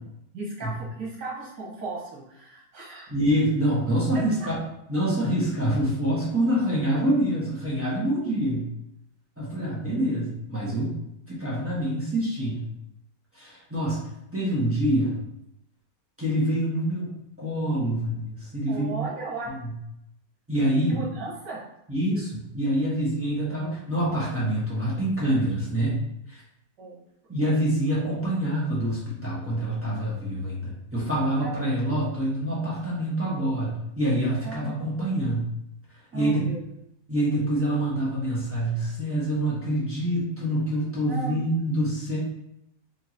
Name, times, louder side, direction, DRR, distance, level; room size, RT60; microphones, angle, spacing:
voice 1, 0.3-3.1 18.7-19.5 20.9-21.6 26.8-27.0 31.4-31.6 34.4-34.9 36.1-36.6 41.1-41.4, right 3 dB, 85° right, -5 dB, 2.0 m, -35 dB
voice 2, 3.1-4.6 4.9-8.7 9.4-11.0 11.3-12.6 13.3-14.0 14.3-15.2 16.2-19.0 19.5-19.7 20.5-21.0 21.9-26.0 26.3-26.4 27.3-35.5 36.1-36.4 37.1-42.2, right 1 dB, 10° right, -8 dB, 1.1 m, -26 dB
4.9 x 2.9 x 2.9 m, 0.81 s
omnidirectional pair, 1.8 m